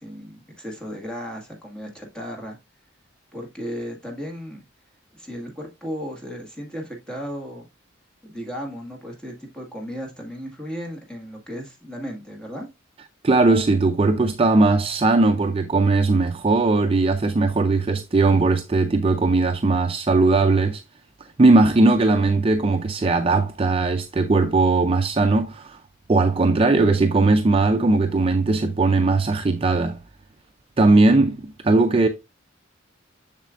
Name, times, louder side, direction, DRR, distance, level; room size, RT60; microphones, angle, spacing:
voice 1, 0.0-2.6 3.3-4.6 5.1-7.7 8.2-12.7, equal, 5° left, 1.8 m, -35 dB
voice 2, 13.2-20.8 21.4-25.8 26.1-30.0 30.8-32.1, right 3 dB, 25° right, 0.4 m, -19 dB
7.3 x 6.5 x 2.5 m
head